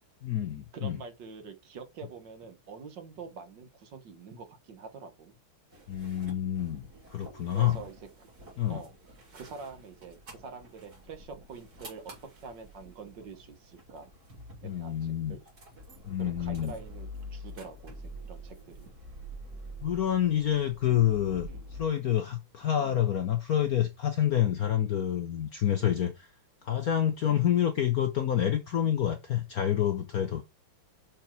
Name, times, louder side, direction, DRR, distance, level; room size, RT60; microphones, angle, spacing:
voice 1, 0.2-1.0 5.9-7.8 8.6-8.8 14.6-15.4 16.0-16.7 19.8-26.3 26.6-30.4, left 10 dB, 65° left, 0.9 m, -28 dB
voice 2, 0.7-5.4 7.5-8.3 8.7-14.1 14.6-15.4 16.2-18.9 21.4-21.7 22.8-23.0 25.8-25.9 27.3-27.6, right 5 dB, 60° right, 1.7 m, -46 dB
sound 1, 5.7-21.9, equal, 45° right, 3.5 m, -47 dB
6.1 x 4.6 x 5.9 m
omnidirectional pair, 2.4 m